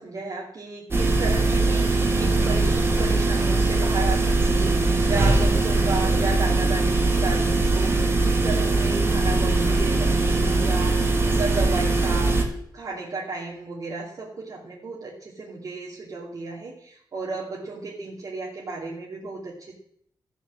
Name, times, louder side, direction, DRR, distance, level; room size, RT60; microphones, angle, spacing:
voice 1, 0.0-12.4 12.7-19.8, right 3 dB, 50° right, -5 dB, 2.8 m, -34 dB
sound 1, 0.9-12.4, right 2 dB, 30° right, 2.3 m, -21 dB
14.0 x 7.0 x 7.6 m, 0.69 s
wide cardioid pair, 130°, 8 cm